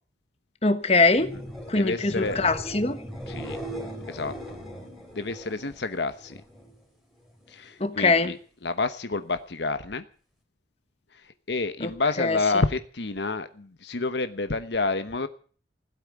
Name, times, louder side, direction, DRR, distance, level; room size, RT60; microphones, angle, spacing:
voice 1, 0.6-1.3 1.7-3.0 7.8-8.3 11.8-11.9 12.2-12.6, left 3 dB, 35° left, 9 dB, 1.3 m, -22 dB
sound 1, 1.0-6.8 7.1-7.7 14.7-14.8, equal, ahead, 3.9 m, -39 dB
voice 2, 1.7-2.4 3.3-3.6 4.1-4.6 5.1-6.4 7.5-8.4 8.6-10.0 11.5-15.3, left 3 dB, 75° left, 10 dB, 1.0 m, -29 dB
16.5 x 8.4 x 9.6 m, 0.43 s
head